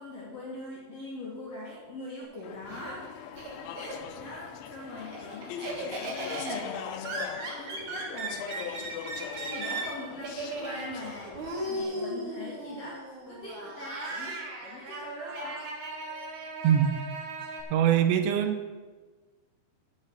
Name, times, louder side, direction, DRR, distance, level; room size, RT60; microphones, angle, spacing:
voice 1, 0.0-3.1 3.4-3.5 4.1-7.1 7.6-9.0 9.4-11.4 11.7-15.7, left 2 dB, 50° left, -4 dB, 2.2 m, -42 dB
Laughter, 2.2-4.3 4.7-17.6, right 2 dB, 55° right, 2.5 m, -37 dB
Speech / Chatter, 2.4-11.8, left 9 dB, 85° left, 3.1 m, -41 dB
voice 2, 16.6-17.0 17.7-18.8, right 9 dB, 80° right, 7 dB, 2.9 m, -23 dB
8.9 x 7.9 x 7.9 m, 1.3 s
omnidirectional pair, 5.2 m